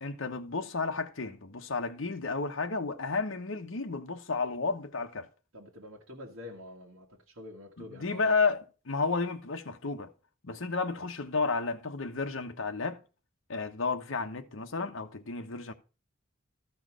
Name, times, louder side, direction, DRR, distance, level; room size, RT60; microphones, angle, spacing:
voice 1, 0.0-5.3 7.8-10.1 10.4-13.0 13.5-15.7, left 4 dB, 70° left, 1.0 m, -32 dB
voice 2, 5.5-8.4, left 2 dB, 75° right, 1.8 m, -46 dB
13.5 x 4.6 x 6.1 m
head